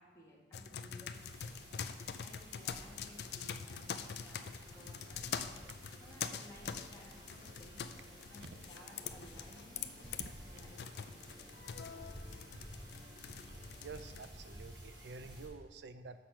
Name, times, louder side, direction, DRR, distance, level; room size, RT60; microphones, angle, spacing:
voice 1, 0.0-1.6 2.2-5.7 6.0-7.9 8.3-11.6, left 1 dB, 20° left, -5 dB, 1.8 m, -59 dB
sound 1, 0.5-14.3, left 7 dB, 65° left, 0.4 m, -45 dB
sound 2, 1.1-15.5, equal, 25° right, 2.1 m, -54 dB
sound 3, 2.8-14.1, equal, 45° right, 1.3 m, -62 dB
voice 2, 13.8-16.2, right 4 dB, 75° right, 11 dB, 0.5 m, -49 dB
6.6 x 5.9 x 5.7 m, 1.3 s
head